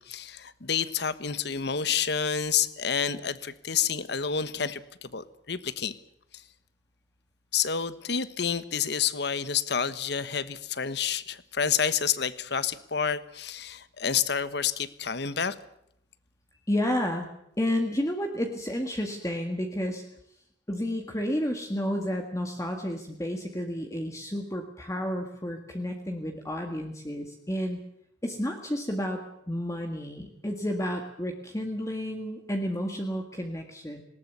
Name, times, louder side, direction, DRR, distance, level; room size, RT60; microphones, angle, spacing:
voice 1, 0.0-5.9 7.5-15.5, left 7 dB, 60° left, 15 dB, 1.2 m, -29 dB
voice 2, 16.7-17.3 17.6-20.0 20.7-27.8 28.2-29.2 29.5-34.0, equal, 15° left, 3 dB, 1.9 m, -31 dB
19.5 x 19.0 x 8.1 m, 0.75 s
head